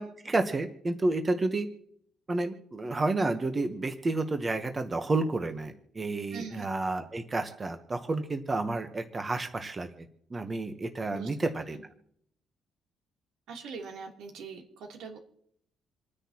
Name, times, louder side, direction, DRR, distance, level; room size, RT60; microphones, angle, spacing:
voice 1, 0.0-1.7 2.3-11.8, right 2 dB, 20° right, 7 dB, 0.9 m, -30 dB
voice 2, 6.3-6.6 11.1-11.3 13.5-15.2, right 5 dB, 85° right, 0 dB, 2.9 m, -42 dB
28.0 x 9.9 x 2.9 m, 0.68 s
cardioid pair, 175°, 0 cm